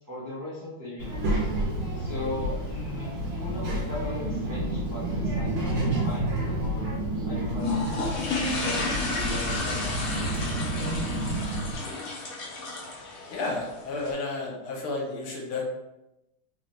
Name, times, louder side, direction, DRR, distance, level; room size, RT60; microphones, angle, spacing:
voice 1, 0.1-1.2 2.0-6.8 7.2-8.0 8.5-9.8, left 2 dB, 15° right, -9 dB, 0.9 m, -38 dB
Child speech kid speaking, 1.0-11.8, right 1 dB, 80° right, 2.1 m, -30 dB
sound 1, 7.5-14.1, left 3 dB, 60° left, 0.9 m, -32 dB
voice 2, 13.3-15.6, left 3 dB, 75° left, -1 dB, 1.7 m, -32 dB
4.2 x 2.8 x 3.2 m, 0.93 s
omnidirectional pair, 2.3 m